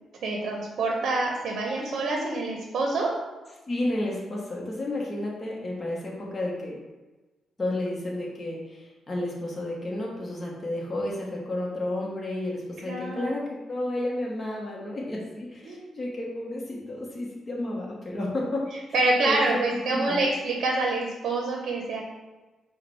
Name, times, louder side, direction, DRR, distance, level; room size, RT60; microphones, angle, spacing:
voice 1, 0.2-3.1 12.8-13.3 15.6-15.9 18.9-22.0, right 2 dB, 70° right, 0 dB, 0.7 m, -26 dB
voice 2, 3.7-6.8 7.6-18.6 19.2-20.2, left 1 dB, 30° left, -4 dB, 1.0 m, -31 dB
4.7 x 2.2 x 4.5 m, 1.2 s
cardioid pair, 95°, 0 cm